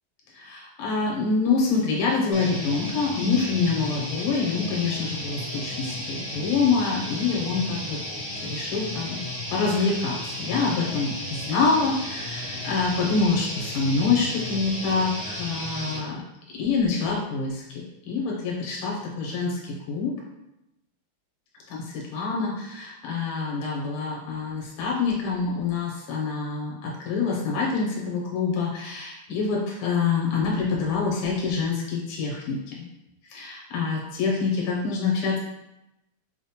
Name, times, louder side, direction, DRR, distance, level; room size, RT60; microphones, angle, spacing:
voice 1, 0.3-8.0 8.4-9.2 9.5-16.2 16.5-20.1 21.7-32.6 33.3-35.4, left 4 dB, 90° left, -3 dB, 1.7 m, -26 dB
sound 1, 2.3-16.0, left 1 dB, 35° left, 0.9 m, -34 dB
5.2 x 2.1 x 2.8 m, 0.90 s
omnidirectional pair, 2.4 m